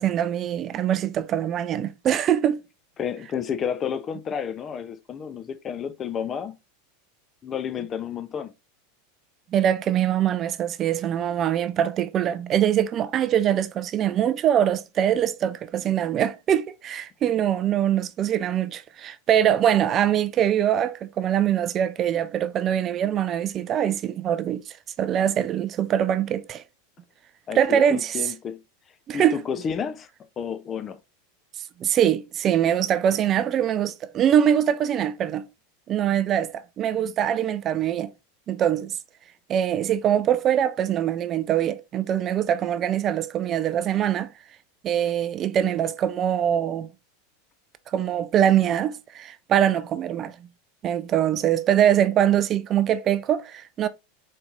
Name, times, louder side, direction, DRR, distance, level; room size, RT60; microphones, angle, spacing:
voice 1, 0.0-2.6 9.5-26.6 27.5-28.3 29.1-29.4 31.8-35.4 35.9-38.1 38.5-39.0 39.5-44.3 44.8-46.9 47.9-50.5 50.8-53.9, right 10 dB, 35° right, 0.3 m, -23 dB
voice 2, 3.0-6.6 7.4-8.5 27.5-28.6 29.1-30.1 30.4-31.0, left 7 dB, 30° left, 0.5 m, -31 dB
4.1 x 3.2 x 2.4 m
hypercardioid pair, 90°, 0 cm